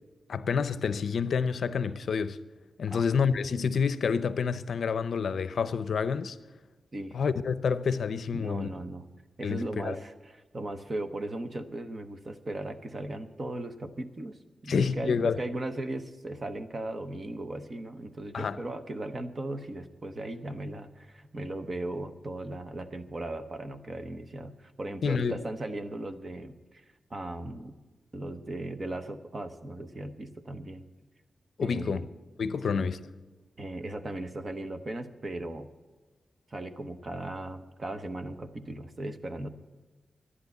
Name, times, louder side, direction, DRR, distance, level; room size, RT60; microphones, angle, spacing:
voice 1, 0.3-2.4 2.8-6.4 7.1-8.7 9.4-10.0 14.7-15.4 18.3-18.6 25.0-25.3 31.6-32.0 32.4-33.0, left 6 dB, 70° left, 0.6 m, -28 dB
voice 2, 8.3-9.1 9.4-26.8 27.1-27.8 28.1-30.9 31.6-32.1 32.7-33.0 33.6-35.7 36.5-39.5, right 1 dB, 30° right, 0.8 m, -37 dB
11.0 x 10.5 x 8.2 m
wide cardioid pair, 165°, 0 cm